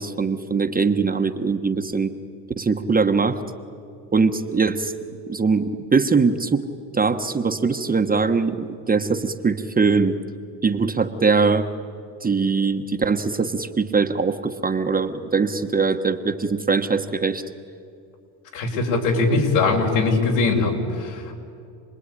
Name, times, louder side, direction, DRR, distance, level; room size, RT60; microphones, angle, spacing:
voice 1, 0.0-2.1 2.6-3.4 4.1-4.9 5.3-6.7 6.9-10.2 10.6-11.7 12.2-17.4, right 4 dB, 15° right, 5 dB, 1.3 m, -21 dB
voice 2, 18.5-21.3, left 3 dB, 70° left, 0 dB, 6.3 m, -21 dB
28.5 x 20.5 x 10.0 m, 2.4 s
supercardioid pair, 100°, 49 cm